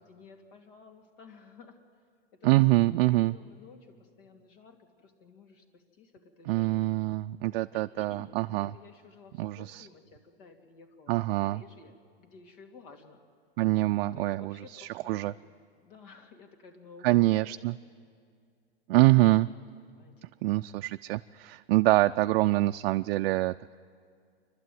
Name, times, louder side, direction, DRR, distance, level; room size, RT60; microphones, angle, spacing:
voice 1, 0.0-1.8 2.4-2.7 3.0-6.8 7.7-13.2 14.1-17.9 19.5-20.1, left 4 dB, 60° left, 5 dB, 2.6 m, -54 dB
voice 2, 2.4-3.3 6.5-8.7 9.4-9.9 11.1-11.6 13.6-15.3 17.0-17.8 18.9-19.5 20.4-23.7, right 18 dB, 65° right, 8 dB, 0.4 m, -25 dB
27.0 x 12.0 x 9.3 m, 2.2 s
supercardioid pair, 135°, 31 cm